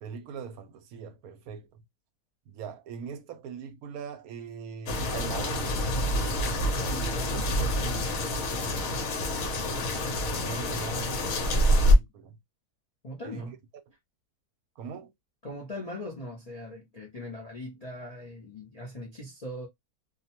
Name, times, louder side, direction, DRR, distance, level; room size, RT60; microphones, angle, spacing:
voice 1, 0.0-1.7 2.5-5.7 10.2-12.4 13.2-13.6 14.8-15.1, right 6 dB, 75° right, 1.0 m, -41 dB
sound 1, 4.9-11.9, equal, 65° left, 1.1 m, -27 dB
voice 2, 6.8-8.1 13.0-13.6 15.4-19.7, left 1 dB, 45° left, 0.5 m, -41 dB
2.6 x 2.1 x 2.8 m
omnidirectional pair, 1.7 m